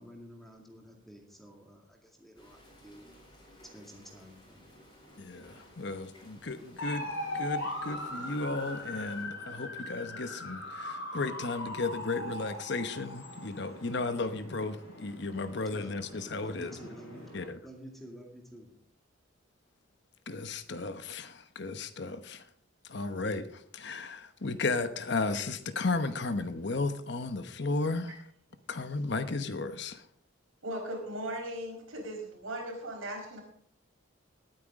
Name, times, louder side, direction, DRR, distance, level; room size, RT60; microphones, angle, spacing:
voice 1, 0.0-3.1 3.6-4.6 15.7-16.0 16.4-17.4 17.6-18.8, equal, ahead, 2.2 m, -50 dB
sound 1, 2.4-9.3, equal, 20° left, 4.8 m, -57 dB
voice 2, 5.2-16.8 17.3-17.6 20.3-22.5 22.8-28.1 28.7-30.0, left 3 dB, 55° left, 1.0 m, -34 dB
sound 2, 6.8-17.5, left 1 dB, 85° left, 6.2 m, -40 dB
voice 3, 30.6-33.4, right 1 dB, 80° right, 5.0 m, -38 dB
19.0 x 9.2 x 3.6 m
head